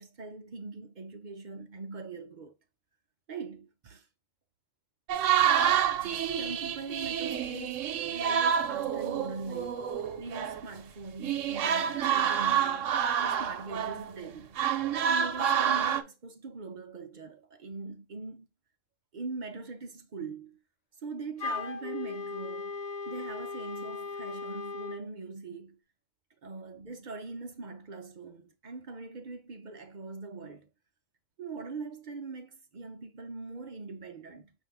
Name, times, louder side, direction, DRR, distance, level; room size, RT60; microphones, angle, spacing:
voice 1, 0.0-2.5 3.3-4.1 6.0-14.6 15.1-18.5 19.1-20.6 21.0-25.8 26.4-30.7 31.4-34.5, right 4 dB, 55° right, 0.5 m, -42 dB
sound 1, 5.1-10.7 11.2-14.3 14.6-16.0, right 8 dB, 70° right, 1.0 m, -28 dB
Wind instrument woodwind instrument, 21.4-25.0, left 4 dB, 65° left, 0.3 m, -37 dB
5.6 x 2.6 x 3.5 m
omnidirectional pair, 1.4 m